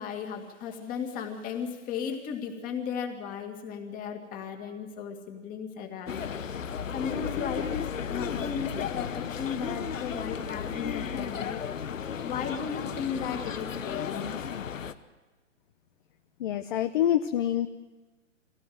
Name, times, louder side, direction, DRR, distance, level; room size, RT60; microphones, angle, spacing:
voice 1, 0.0-6.4 6.9-11.7 12.2-14.4, left 7 dB, 20° left, 4 dB, 2.2 m, -36 dB
sound 1, 6.1-14.9, left 7 dB, 85° left, 1.2 m, -34 dB
voice 2, 16.4-17.7, left 11 dB, 40° left, 9 dB, 0.8 m, -26 dB
22.5 x 17.0 x 7.8 m, 1.2 s
hypercardioid pair, 140°, 38 cm